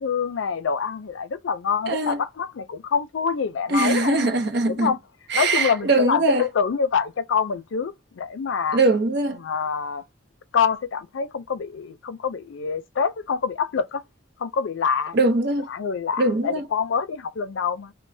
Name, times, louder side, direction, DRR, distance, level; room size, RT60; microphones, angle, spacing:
voice 1, 0.0-4.4 4.7-5.0 5.3-8.8 9.4-10.0 10.5-14.0 14.4-15.2 15.7-17.9, left 6 dB, 90° left, 0.4 m, -26 dB
voice 2, 1.9-2.2 3.7-4.9 5.3-6.4 8.7-9.4 15.1-15.7 16.2-16.6, right 2 dB, 60° right, 0.6 m, -21 dB
3.1 x 2.1 x 2.6 m
head